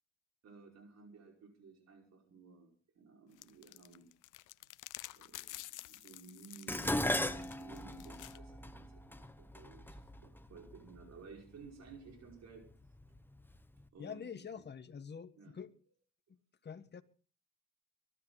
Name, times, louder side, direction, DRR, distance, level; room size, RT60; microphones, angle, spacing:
voice 1, 0.4-4.1 5.1-12.7 13.9-14.3 15.4-15.5, right 5 dB, 60° right, 5.3 m, -56 dB
sound 1, 3.4-8.4, left 17 dB, 90° left, 0.7 m, -50 dB
Dishes pots and pans, 6.7-11.0 11.9-12.3 12.7-13.6 13.8-13.9, left 1 dB, 5° left, 1.3 m, -38 dB
voice 2, 14.0-15.7 16.6-17.0, left 6 dB, 35° left, 1.4 m, -46 dB
23.5 x 12.5 x 4.0 m
cardioid pair, 90°, 30 cm